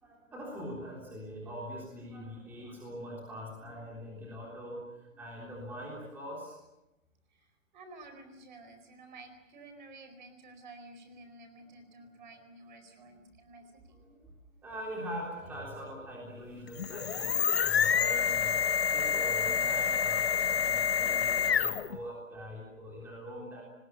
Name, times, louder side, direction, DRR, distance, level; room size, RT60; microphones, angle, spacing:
voice 1, 0.0-6.6 13.9-18.7 18.9-23.6, equal, 5° right, -3 dB, 3.5 m, -43 dB
voice 2, 7.7-13.6, right 2 dB, 35° right, 7 dB, 4.7 m, -51 dB
sound 1, 16.7-22.0, left 7 dB, 50° left, 0.9 m, -28 dB
28.0 x 20.5 x 7.1 m, 0.93 s
hypercardioid pair, 165°, 40 cm